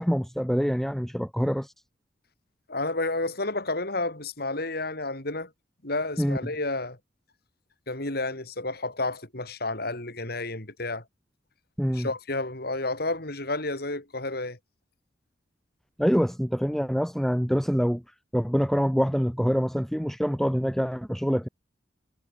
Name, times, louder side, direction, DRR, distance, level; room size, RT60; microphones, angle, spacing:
voice 1, 0.0-1.7 6.2-6.4 11.8-12.1 16.0-18.0 18.3-21.5, equal, ahead, 3.2 m, -25 dB
voice 2, 2.7-5.5 5.8-7.0 7.9-11.0 11.9-14.6, left 2 dB, 55° left, 5.1 m, -31 dB
head